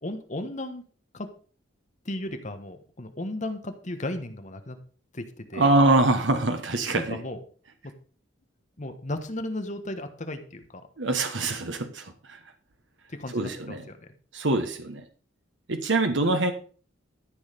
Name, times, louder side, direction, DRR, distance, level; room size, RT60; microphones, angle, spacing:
voice 1, 0.0-0.8 1.1-1.3 2.0-4.8 5.1-5.7 6.9-7.4 8.8-10.8 13.1-14.0, left 1 dB, 40° left, 7 dB, 1.3 m, -35 dB
voice 2, 5.5-7.2 11.0-12.4 13.3-13.8 14.3-15.0 15.7-16.5, right 2 dB, 70° right, 7 dB, 1.3 m, -24 dB
13.0 x 6.5 x 5.1 m, 0.40 s
head